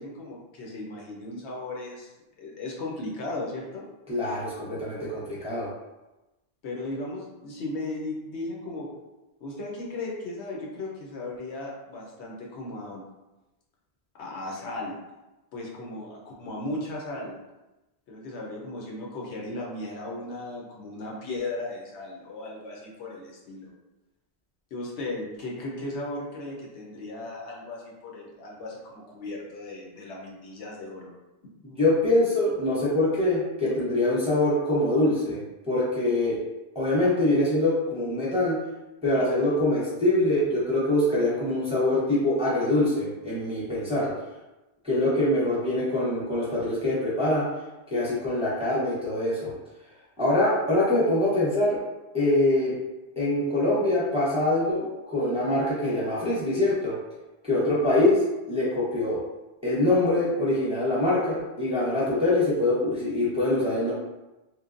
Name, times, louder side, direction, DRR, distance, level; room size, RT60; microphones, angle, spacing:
voice 1, 0.0-2.1 2.4-3.8 6.6-8.9 9.4-13.0 14.2-15.0 15.5-17.4 18.1-23.7 24.7-31.1 33.6-33.7, left 2 dB, 90° left, -2 dB, 1.0 m, -36 dB
voice 2, 4.1-5.7 31.6-35.4 35.7-36.4 36.7-38.6 39.0-44.1 44.8-47.5 47.9-49.5 50.2-51.8 52.1-52.8 53.2-56.9 57.4-58.2 58.5-59.2 59.6-63.9, left 1 dB, 5° right, -8 dB, 0.6 m, -24 dB
3.0 x 2.2 x 2.5 m, 1.0 s
omnidirectional pair, 1.1 m